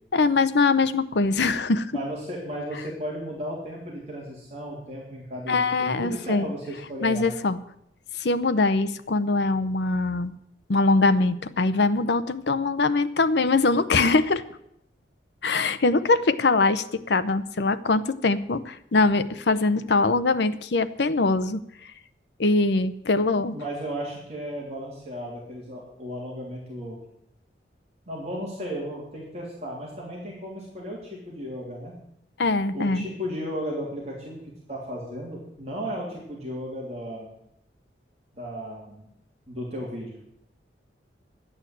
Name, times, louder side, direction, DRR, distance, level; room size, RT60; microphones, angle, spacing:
voice 1, 0.1-1.9 5.5-6.5 7.0-7.6 8.2-10.3 10.7-14.4 15.4-21.6 22.4-23.6 32.4-33.0, left 3 dB, 70° left, 12 dB, 0.7 m, -22 dB
voice 2, 1.9-7.3 23.5-27.0 28.1-31.9 32.7-34.4 34.7-37.3 38.3-39.1 39.5-40.1, equal, 35° right, -3 dB, 3.1 m, -35 dB
12.0 x 8.8 x 7.8 m, 0.75 s
head